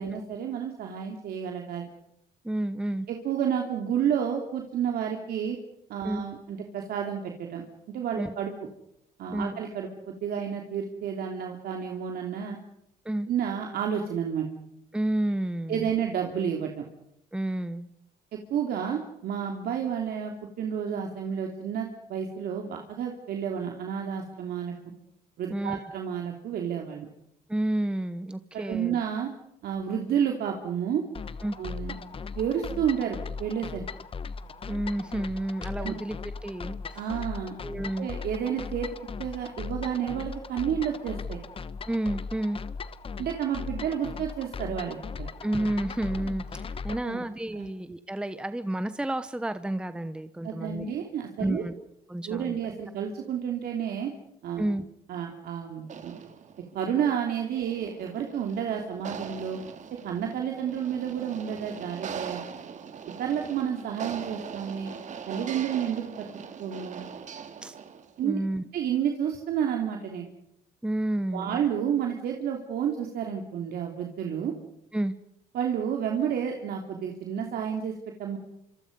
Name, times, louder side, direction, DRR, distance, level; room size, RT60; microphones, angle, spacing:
voice 1, 0.0-1.9 3.1-5.6 5.9-8.5 9.2-12.6 13.3-14.5 15.7-16.7 18.5-24.7 25.4-27.1 28.5-29.3 29.6-31.0 31.6-31.9 32.3-33.8 35.8-35.9 36.9-37.5 38.0-38.9 39.2-41.4 43.2-45.3 47.0-47.2 47.5-47.7 50.4-51.6 52.3-54.1 54.4-54.7 55.1-56.1 56.7-59.6 60.0-62.4 63.2-64.9 65.3-66.3 66.6-67.0 68.2-68.4 68.7-70.3 71.3-74.5 75.5-77.9 78.2-78.4, right 8 dB, 65° right, 2 dB, 3.1 m, -30 dB
voice 2, 2.4-3.1 6.0-6.2 8.2-8.3 9.3-9.6 13.0-13.3 14.9-15.9 17.3-17.9 25.5-25.8 27.5-29.0 31.4-31.6 34.7-37.0 37.6-38.1 41.9-42.6 45.4-50.9 51.4-51.7 52.1-52.5 54.6-54.8 67.6-67.8 68.2-68.6 70.8-71.6 74.9-75.1, right 1 dB, 5° right, 11 dB, 1.0 m, -30 dB
sound 1, 31.1-47.0, left 5 dB, 35° left, 1.1 m, -38 dB
sound 2, 55.8-68.2, right 7 dB, 45° right, 2.3 m, -41 dB
26.5 x 26.0 x 5.4 m, 0.79 s
cardioid pair, 110°, 17 cm